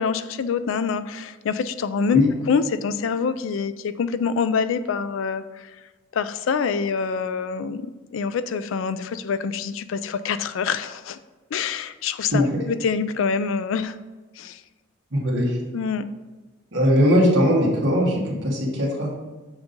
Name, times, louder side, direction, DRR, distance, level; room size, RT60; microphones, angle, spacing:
voice 1, 0.0-2.2 2.5-5.7 6.1-11.2 11.5-14.0 14.4-14.6 15.7-16.0, left 5 dB, 75° left, 13 dB, 0.3 m, -25 dB
voice 2, 15.1-15.6 16.7-19.1, equal, 65° right, -3 dB, 1.6 m, -20 dB
7.0 x 2.7 x 5.1 m, 1.2 s
head